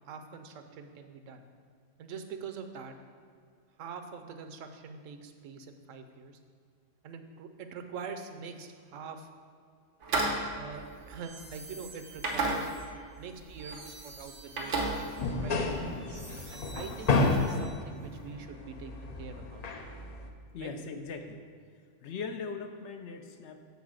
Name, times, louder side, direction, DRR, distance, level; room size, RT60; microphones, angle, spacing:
voice 1, 0.1-1.5 2.0-3.0 3.8-6.4 7.0-9.3 10.5-12.7 13.2-15.2 15.4-15.6 16.5-19.6 20.6-20.7, right 5 dB, 90° right, 7 dB, 1.0 m, -44 dB
sound 1, 10.0-11.7 12.2-13.1 13.4-13.8 14.1-15.7, right 2 dB, 70° right, 1.3 m, -33 dB
sound 2, 10.9-18.1, right 2 dB, 35° right, 1.2 m, -51 dB
sound 3, 15.2-20.3, left 3 dB, 50° left, 0.5 m, -31 dB
voice 2, 20.5-21.4 22.0-23.7, left 5 dB, 70° left, 6 dB, 0.9 m, -40 dB
7.1 x 3.9 x 6.2 m, 2.2 s
omnidirectional pair, 1.3 m